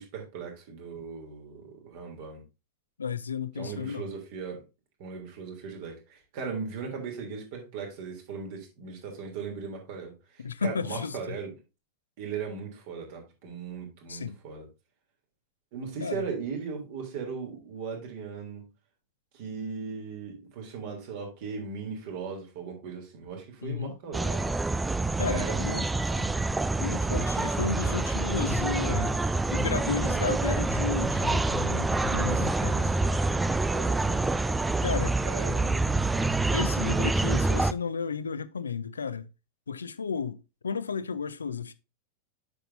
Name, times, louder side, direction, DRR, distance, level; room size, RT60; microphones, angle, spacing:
voice 1, 0.0-2.4 3.6-4.6 5.0-11.5 12.2-14.7 15.7-18.6 19.3-24.5 25.3-26.4 32.1-34.4 35.2-36.3, right 5 dB, 50° right, 3.1 m, -38 dB
voice 2, 3.0-4.1 10.4-11.4 14.1-14.4 16.0-16.2 23.6-24.0 25.2-25.8 26.8-29.2 29.5-32.9 34.8-35.2 36.5-39.3 39.7-40.4 40.6-41.7, left 6 dB, 75° left, 0.5 m, -33 dB
sound 1, 24.1-36.5, left 5 dB, 40° left, 1.4 m, -52 dB
sound 2, 24.1-37.7, right 3 dB, 10° right, 0.4 m, -27 dB
8.3 x 6.8 x 2.7 m
figure-of-eight pair, 90°, 0 cm